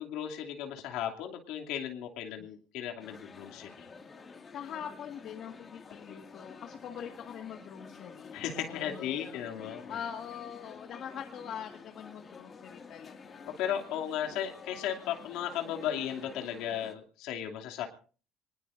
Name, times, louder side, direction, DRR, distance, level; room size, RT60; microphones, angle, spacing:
voice 1, 0.0-3.9 8.3-10.0 13.6-17.9, left 10 dB, 80° left, 2 dB, 2.7 m, -35 dB
sound 1, 3.0-17.0, left 4 dB, 30° left, 2.2 m, -50 dB
voice 2, 4.5-13.5, left 8 dB, 60° left, 3 dB, 1.8 m, -43 dB
26.0 x 20.0 x 2.6 m, 0.38 s
cardioid pair, 110°, 0 cm